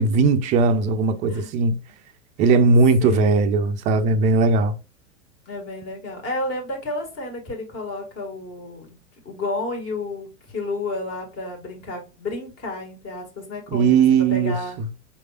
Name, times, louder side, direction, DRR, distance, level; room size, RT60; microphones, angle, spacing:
voice 1, 0.0-1.8 2.4-4.8 13.7-14.9, right 4 dB, 20° right, 0.3 m, -18 dB
voice 2, 3.0-3.5 5.5-9.0 9.3-14.0 14.3-14.8, left 2 dB, 35° left, 1.9 m, -31 dB
5.3 x 3.2 x 2.4 m
figure-of-eight pair, 95°, 39 cm